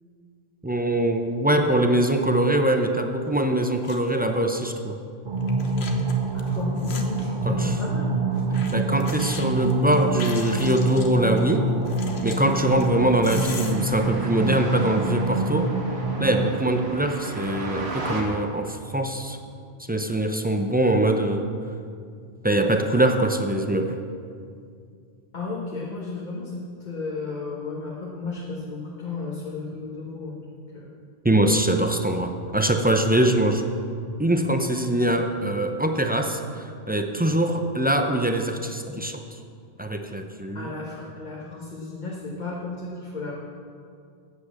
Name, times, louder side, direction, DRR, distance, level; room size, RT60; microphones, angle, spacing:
voice 1, 0.6-5.0 7.4-7.7 8.7-11.7 12.2-15.7 16.2-19.4 19.9-21.5 22.4-24.0 31.2-33.6 34.2-39.2 39.8-40.7, right 1 dB, 15° right, 5 dB, 0.4 m, -23 dB
sound 1, 3.4-3.5 3.8-4.2 4.4-4.5 5.4-7.3 8.3-11.4 11.9-13.8, left 5 dB, 80° left, 1.2 m, -39 dB
sound 2, 5.2-16.5, right 2 dB, 50° right, 1.4 m, -26 dB
voice 2, 6.3-8.2 25.3-30.9 40.5-43.3, left 3 dB, 45° left, -4 dB, 1.4 m, -34 dB
sound 3, 12.5-18.2, right 2 dB, 80° right, 1.7 m, -36 dB
8.4 x 8.0 x 7.1 m, 2.3 s
omnidirectional pair, 1.1 m